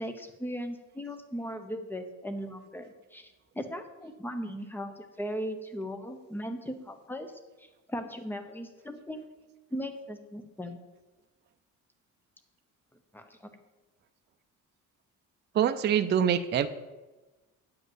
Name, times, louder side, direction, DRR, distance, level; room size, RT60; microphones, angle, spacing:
voice 1, 0.0-7.3 7.6-9.2 9.7-10.8 13.1-13.4, equal, 5° left, 7 dB, 0.8 m, -38 dB
voice 2, 15.5-16.7, right 9 dB, 35° right, 9 dB, 0.5 m, -25 dB
8.9 x 5.4 x 7.9 m, 1.1 s
cardioid pair, 140°, 32 cm